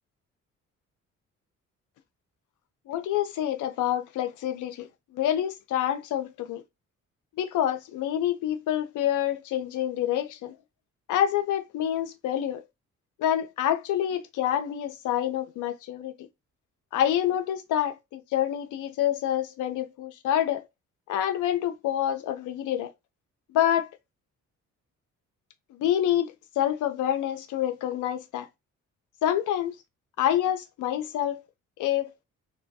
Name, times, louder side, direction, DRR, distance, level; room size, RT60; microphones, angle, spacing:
voice 1, 2.9-4.9 5.1-6.6 7.4-10.5 11.1-12.6 13.2-16.3 16.9-20.6 21.1-22.9 23.5-23.9 25.8-28.5 29.2-29.7 30.2-31.4 31.8-32.1, left 11 dB, 85° left, 0.7 m, -27 dB
4.3 x 2.2 x 2.7 m
cardioid pair, 90°, 30 cm